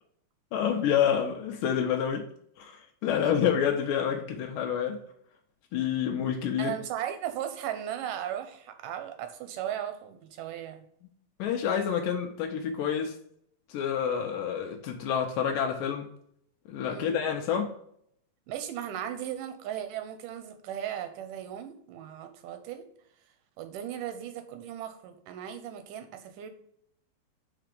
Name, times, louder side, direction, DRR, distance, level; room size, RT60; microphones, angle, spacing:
voice 1, 0.5-2.3 2.6-5.0 5.7-6.7 11.4-13.2 13.7-16.1 16.7-17.7, left 8 dB, 80° left, 2 dB, 2.3 m, -28 dB
voice 2, 6.6-10.8 16.9-17.2 18.5-22.9 23.6-26.5, right 10 dB, 80° right, 8 dB, 2.2 m, -37 dB
5.0 x 4.6 x 5.0 m, 0.69 s
omnidirectional pair, 4.0 m